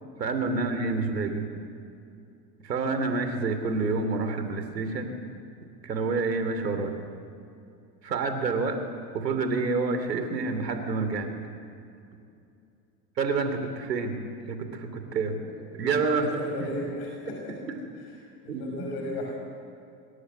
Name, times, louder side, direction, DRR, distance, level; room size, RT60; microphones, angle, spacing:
voice 1, 0.2-1.5 2.6-5.2 5.8-7.0 8.0-8.8 9.1-11.3 13.2-15.4 15.7-16.3 17.3-17.8 18.5-18.9, right 4 dB, 80° right, 8 dB, 3.1 m, -28 dB
voice 2, 16.0-17.6 17.9-18.1 18.4-19.3, left 1 dB, 50° left, -1 dB, 6.6 m, -35 dB
24.5 x 21.5 x 7.9 m, 2.5 s
figure-of-eight pair, 80°, 49 cm